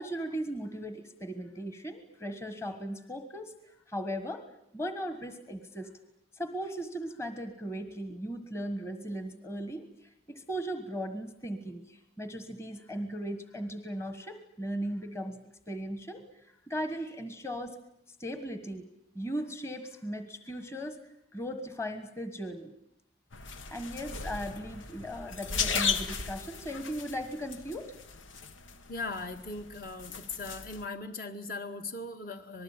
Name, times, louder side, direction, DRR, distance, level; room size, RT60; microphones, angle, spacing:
voice 1, 0.0-4.4 4.7-5.9 6.3-15.4 15.7-17.8 18.2-18.8 19.1-21.0 21.3-22.7 23.7-27.9, equal, 15° left, 9 dB, 1.5 m, -37 dB
sound 1, 23.3-30.8, left 6 dB, 85° left, 1.6 m, -36 dB
voice 2, 28.9-32.6, left 3 dB, 45° left, 6 dB, 2.0 m, -39 dB
26.5 x 20.0 x 9.0 m, 0.75 s
head